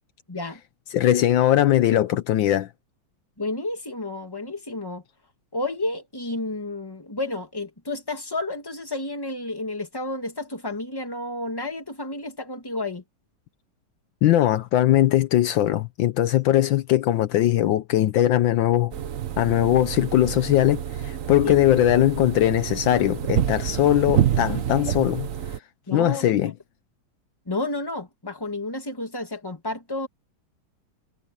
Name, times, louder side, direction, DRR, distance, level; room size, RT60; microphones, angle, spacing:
voice 1, 0.3-0.6 3.4-5.0 5.5-13.0 21.4-21.5 25.9-26.3 27.5-30.1, left 2 dB, 10° left, 2.1 m, -31 dB
voice 2, 0.9-2.7 14.2-18.9 19.4-25.3 25.9-26.5, left 13 dB, 75° left, 1.4 m, -20 dB
sound 1, 18.9-25.6, right 10 dB, 50° right, 1.1 m, -28 dB
omnidirectional pair, 2.2 m